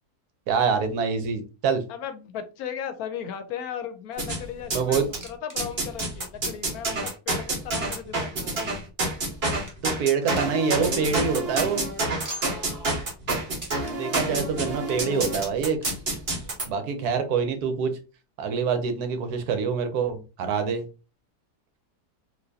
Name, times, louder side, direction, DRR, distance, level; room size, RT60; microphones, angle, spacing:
voice 1, 0.5-1.8 4.7-5.1 9.8-11.8 13.9-15.8 16.7-18.0 18.4-20.9, right 6 dB, 75° right, 8 dB, 1.2 m, -25 dB
voice 2, 1.9-8.6, left 8 dB, 75° left, 8 dB, 1.0 m, -36 dB
sound 1, 4.2-5.2 5.6-16.7, right 2 dB, 40° right, 1.2 m, -28 dB
sound 2, 5.1-5.6 5.9-6.0 6.6-6.7 7.5-8.9 9.3-9.4 9.7-10.7 11.0-11.1 11.4-11.5 12.2-12.7 13.5-14.0 14.6-15.1 15.8-16.2 17.2-17.3 17.5-17.6 18.4-18.5, equal, 20° right, 0.5 m, -42 dB
4.2 x 2.5 x 2.7 m, 0.32 s
omnidirectional pair, 1.7 m